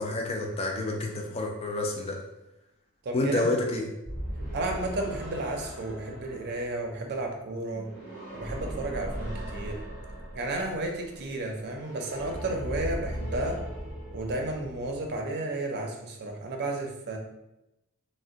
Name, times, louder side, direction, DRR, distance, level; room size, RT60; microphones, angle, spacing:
voice 1, 0.0-2.2 3.1-3.9, left 2 dB, 25° left, 1 dB, 0.3 m, -29 dB
voice 2, 3.0-3.5 4.5-7.9 8.3-9.8 10.3-13.6 14.1-17.2, right 2 dB, 50° right, 2 dB, 0.5 m, -32 dB
sound 1, 4.0-15.3, right 1 dB, 55° left, 1.3 m, -38 dB
2.5 x 2.1 x 3.8 m, 0.92 s
head